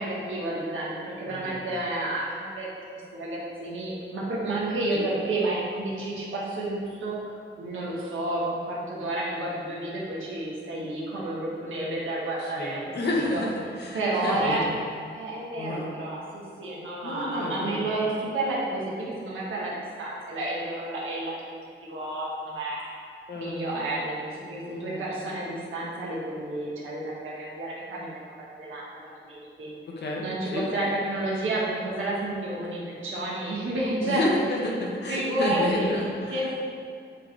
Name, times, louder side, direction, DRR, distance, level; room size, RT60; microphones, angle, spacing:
voice 1, 0.0-7.2 7.6-12.8 13.3-13.4 13.9-14.7 15.1-21.3 21.8-22.8 23.3-29.7 30.2-34.3 35.1-35.9 36.3-36.6, right 2 dB, 80° right, -6 dB, 1.4 m, -30 dB
voice 2, 1.3-1.6 4.9-5.0 12.4-14.8 15.6-15.9 17.0-17.9 23.3-23.9 24.6-25.1 29.9-30.2 30.5-30.7 34.0-36.4, left 2 dB, 60° left, -2 dB, 1.1 m, -30 dB
8.2 x 3.9 x 3.3 m, 2.4 s
wide cardioid pair, 160°, 20 cm